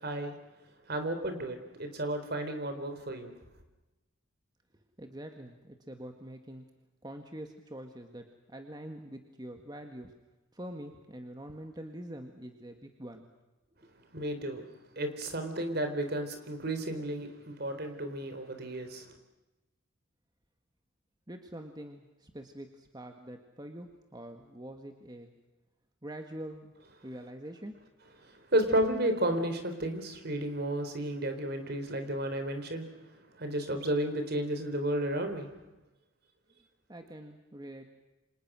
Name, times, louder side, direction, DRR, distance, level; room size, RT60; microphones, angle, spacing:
voice 1, 0.0-0.3 0.9-3.3 14.1-14.6 15.0-19.1 28.5-32.9 33.4-35.5, right 1 dB, 50° right, 7 dB, 3.9 m, -32 dB
voice 2, 5.0-6.7 7.0-10.1 10.5-13.3 13.7-13.8 21.3-25.3 26.0-26.7 27.0-27.7 28.2-28.3 36.9-37.9, right 1 dB, 20° right, 4 dB, 1.8 m, -45 dB
29.0 x 26.5 x 6.3 m, 1.0 s
head